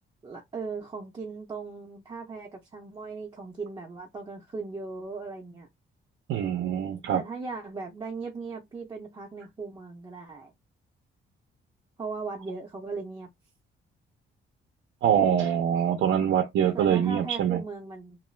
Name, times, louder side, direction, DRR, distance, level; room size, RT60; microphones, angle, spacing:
voice 1, 0.2-5.7 7.1-10.5 12.0-13.3 16.7-18.2, right 4 dB, 20° right, 0.5 m, -38 dB
voice 2, 6.3-7.2 15.0-17.6, right 9 dB, 80° right, 0.4 m, -24 dB
2.4 x 2.1 x 3.1 m
cardioid pair, 145°, 20 cm